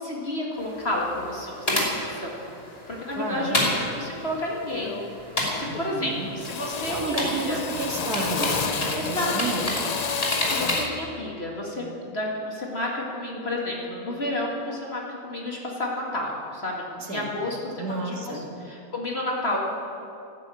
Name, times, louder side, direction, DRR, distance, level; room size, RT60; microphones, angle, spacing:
voice 1, 0.0-2.4 2.9-5.0 5.5-7.6 8.9-9.7 10.5-19.6, left 1 dB, 45° left, -2 dB, 2.3 m, -31 dB
sound 1, 0.6-11.0, left 1 dB, 25° left, 3.0 m, -31 dB
voice 2, 3.1-3.7 5.7-6.3 6.9-9.9 17.0-18.5, right 3 dB, 90° right, 1 dB, 2.4 m, -31 dB
Drill, 4.1-4.3 4.7-5.2 5.5-6.1 6.4-11.0, left 6 dB, 70° left, 0.3 m, -31 dB
12.5 x 12.0 x 8.5 m, 2.6 s
omnidirectional pair, 1.6 m